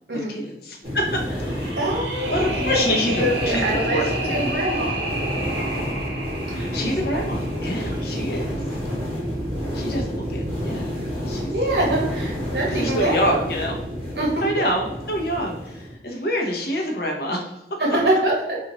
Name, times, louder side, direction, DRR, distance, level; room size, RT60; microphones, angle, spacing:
voice 1, 0.1-1.8 2.3-4.5 6.5-8.8 9.7-11.5 12.7-13.8 14.4-17.6, equal, 55° left, 0 dB, 0.7 m, -27 dB
sound 1, 0.8-15.9, equal, 30° right, 1.2 m, -29 dB
sound 2, 1.4-8.5, right 1 dB, 90° right, 0.8 m, -31 dB
voice 2, 1.8-2.8 3.1-5.0 11.5-13.4 14.1-14.7 17.8-18.6, right 1 dB, 60° right, -2 dB, 1.1 m, -24 dB
3.0 x 2.5 x 3.7 m, 0.86 s
head